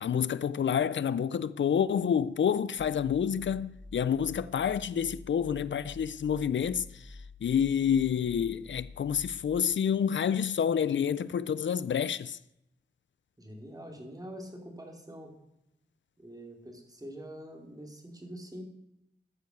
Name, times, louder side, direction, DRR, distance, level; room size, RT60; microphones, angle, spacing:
voice 1, 0.0-12.4, left 8 dB, 90° left, 0.4 m, -28 dB
sound 1, 2.8-9.6, left 3 dB, 40° left, 1.5 m, -48 dB
voice 2, 13.4-15.3 16.2-18.6, equal, 20° right, 2.9 m, -45 dB
14.0 x 6.6 x 6.4 m
wide cardioid pair, 55°, 19 cm